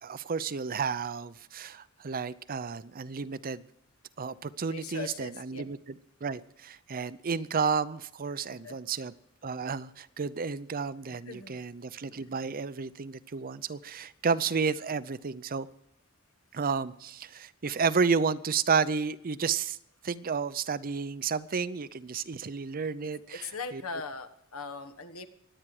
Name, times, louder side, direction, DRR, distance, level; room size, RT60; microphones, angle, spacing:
voice 1, 0.0-3.6 4.2-5.8 6.2-9.1 9.4-15.7 16.5-19.8 20.0-23.5 23.7-23.8, right 5 dB, 40° right, 15 dB, 0.6 m, -31 dB
voice 2, 4.7-5.6 8.5-8.8 11.1-11.6 23.0-25.3, left 4 dB, 80° left, 8 dB, 1.4 m, -40 dB
23.0 x 8.9 x 4.8 m, 0.73 s
head